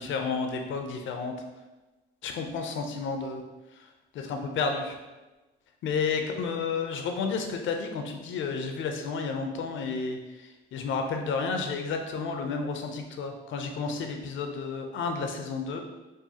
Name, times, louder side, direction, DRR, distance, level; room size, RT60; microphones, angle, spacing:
voice 1, 0.0-1.4 2.2-3.4 3.7-5.0 5.8-15.8, left 4 dB, 75° left, 4 dB, 0.6 m, -31 dB
4.7 x 2.6 x 2.8 m, 1.1 s
cardioid pair, 90°, 20 cm